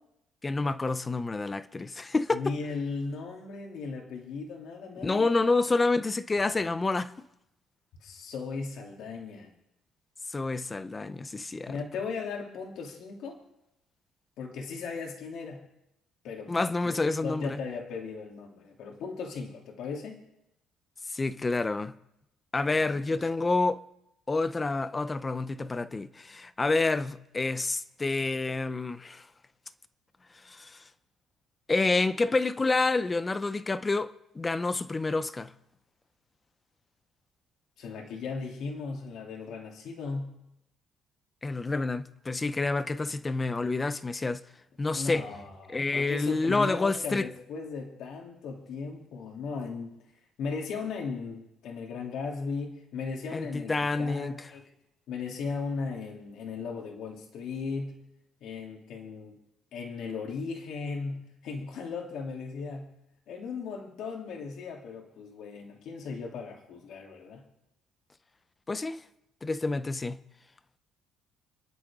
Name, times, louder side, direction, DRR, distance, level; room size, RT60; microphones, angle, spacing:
voice 1, 0.4-2.4 5.0-7.1 10.3-11.8 16.5-17.6 21.1-22.0 22.5-23.8 24.3-29.2 30.4-30.8 31.7-35.5 41.4-44.4 44.8-45.3 45.7-47.3 53.3-54.3 68.7-69.0 69.4-70.2, left 3 dB, 15° left, 0.6 m, -28 dB
voice 2, 2.3-5.3 8.0-9.5 11.7-13.4 14.4-15.6 16.2-16.9 17.2-20.2 22.7-23.2 37.8-40.4 44.9-50.0 50.4-54.7 55.1-58.0 58.4-59.4 59.7-62.9 63.3-67.4, left 4 dB, 60° left, 2.7 m, -37 dB
29.5 x 11.0 x 3.6 m
cardioid pair, 175°, 0 cm